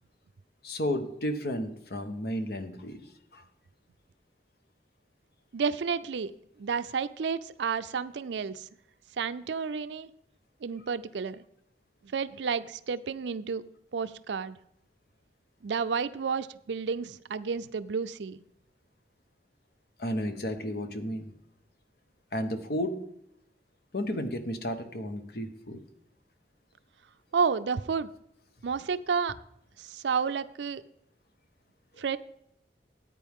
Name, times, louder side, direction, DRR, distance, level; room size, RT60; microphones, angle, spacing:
voice 1, 0.6-3.0 3.3-3.4 20.0-21.3 22.3-22.9 23.9-25.8, equal, 60° left, 7 dB, 1.1 m, -32 dB
voice 2, 5.5-6.3 6.6-8.7 9.2-10.1 10.6-11.4 12.1-13.6 13.9-14.6 15.6-18.4 27.3-28.1 28.6-29.4 29.8-30.8 32.0-32.2, right 5 dB, 85° right, 12 dB, 0.4 m, -31 dB
14.5 x 9.0 x 3.7 m, 0.75 s
head